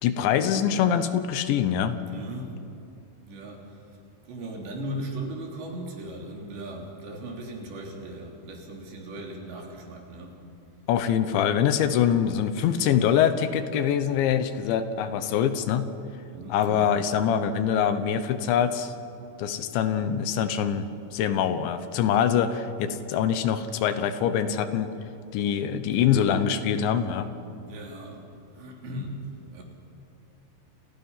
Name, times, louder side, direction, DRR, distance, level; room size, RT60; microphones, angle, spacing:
voice 1, 0.0-2.0 10.9-15.9 16.5-18.9 19.4-24.9 25.3-27.3, left 8 dB, 80° left, 10 dB, 3.3 m, -24 dB
voice 2, 2.0-2.6 3.3-3.8 4.3-10.4 16.3-17.0 26.0-26.6 27.7-28.3 28.5-29.2 29.5-29.6, right 1 dB, 70° right, 0 dB, 5.5 m, -38 dB
29.5 x 27.5 x 5.7 m, 2.6 s
omnidirectional pair, 5.4 m